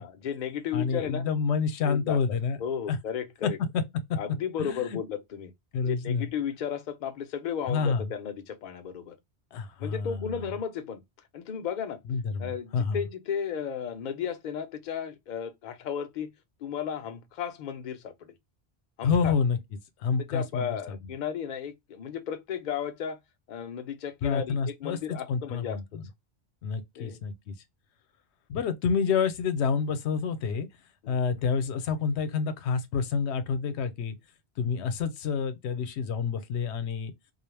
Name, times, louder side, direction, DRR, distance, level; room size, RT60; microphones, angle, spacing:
voice 1, 0.0-1.3 1.8-3.6 4.2-5.5 5.8-9.2 9.8-11.0 11.3-12.0 12.4-16.3 16.6-18.3 19.0-19.3 20.2-23.2 23.5-26.0 27.0-27.2 31.0-31.2, left 8 dB, 55° left, 0.6 m, -34 dB
voice 2, 0.7-2.6 2.9-3.0 3.4-3.8 4.1-4.2 4.6-5.0 5.7-6.3 7.7-8.1 9.5-10.5 12.1-13.0 19.0-19.6 20.0-21.0 24.2-26.0 26.6-27.6 28.5-30.7 31.1-34.2 34.6-37.1, left 5 dB, 85° left, 0.9 m, -28 dB
2.3 x 2.0 x 3.1 m
omnidirectional pair, 1.1 m